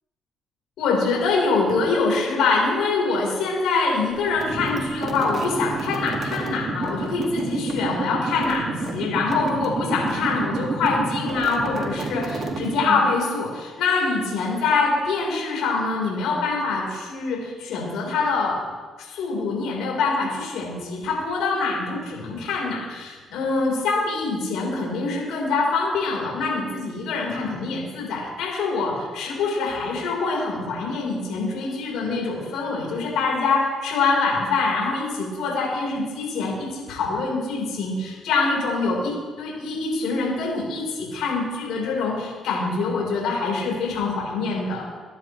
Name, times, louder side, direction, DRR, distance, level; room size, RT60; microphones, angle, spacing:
voice 1, 0.8-18.6 19.0-44.8, left 4 dB, 80° left, -3 dB, 4.7 m, -24 dB
sound 1, 4.2-13.2, right 3 dB, 50° right, 2.4 m, -30 dB
24.0 x 10.5 x 3.4 m, 1.4 s
supercardioid pair, 55°, 0 cm